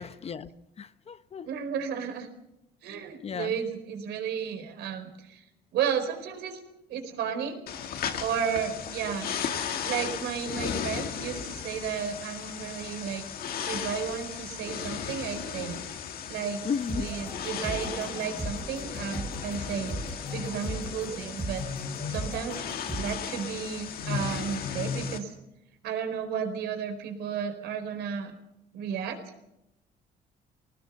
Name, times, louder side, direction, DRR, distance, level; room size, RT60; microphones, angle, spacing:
voice 1, 0.0-1.5 2.9-3.6 16.6-17.1, left 6 dB, 35° left, 1.0 m, -35 dB
voice 2, 1.4-2.3 2.8-5.4 5.7-6.6 6.9-7.6 8.2-9.3 9.8-13.4 13.7-15.8 16.3-16.7 16.9-22.6 22.9-25.3 25.8-28.3 28.7-29.2, right 7 dB, 80° right, 4.6 m, -33 dB
sound 1, 7.7-25.2, left 7 dB, 65° left, 2.2 m, -35 dB
sound 2, 16.9-23.1, right 1 dB, 5° right, 3.6 m, -38 dB
21.0 x 19.0 x 7.1 m
cardioid pair, 110°, 17 cm